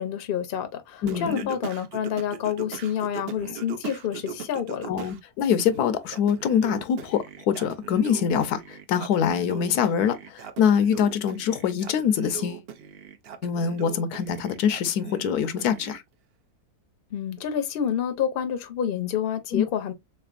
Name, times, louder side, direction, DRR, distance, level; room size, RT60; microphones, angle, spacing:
voice 1, 0.0-4.9 17.1-19.9, left 9 dB, 50° left, 0.7 m, -28 dB
voice 2, 1.0-1.5 4.9-12.7 13.4-16.0 19.5-19.6, left 8 dB, 80° left, 1.1 m, -24 dB
Singing, 1.1-5.2 5.6-16.0, right 8 dB, 70° right, 0.5 m, -40 dB
3.7 x 3.3 x 2.4 m
omnidirectional pair, 1.7 m